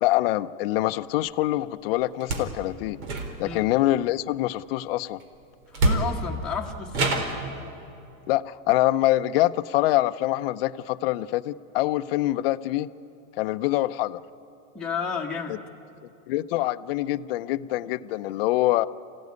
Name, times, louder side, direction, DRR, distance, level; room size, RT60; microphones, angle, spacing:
voice 1, 0.0-3.0 3.4-5.2 8.3-12.9 13.4-14.2 15.5-15.6 16.3-18.9, left 16 dB, 45° left, 11 dB, 0.6 m, -25 dB
sound 1, 2.2-2.5 3.0-3.6 5.2-5.3 5.7-6.4 6.9-7.4, right 2 dB, 85° right, 4.0 m, -25 dB
voice 2, 5.7-7.1 14.7-15.6, left 5 dB, ahead, -5 dB, 1.2 m, -32 dB
27.5 x 16.0 x 9.5 m, 2.6 s
supercardioid pair, 175°, 41 cm